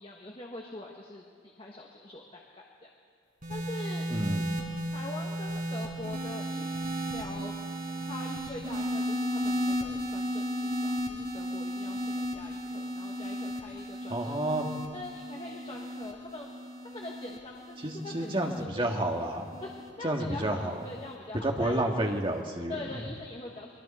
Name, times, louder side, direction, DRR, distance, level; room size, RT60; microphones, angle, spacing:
voice 1, 0.0-2.9 3.5-4.0 4.9-7.5 8.1-14.6 14.9-16.5 16.8-19.1 19.6-21.7 22.7-23.7, left 2 dB, 30° left, -1 dB, 1.4 m, -43 dB
sound 1, 3.4-19.9 20.8-21.1, equal, 45° right, 4.5 m, -34 dB
voice 2, 4.1-4.5 14.1-14.7 17.8-19.5 20.0-20.7 21.4-23.0, right 1 dB, 25° right, 1 dB, 1.8 m, -30 dB
28.5 x 22.5 x 4.4 m, 2.4 s
head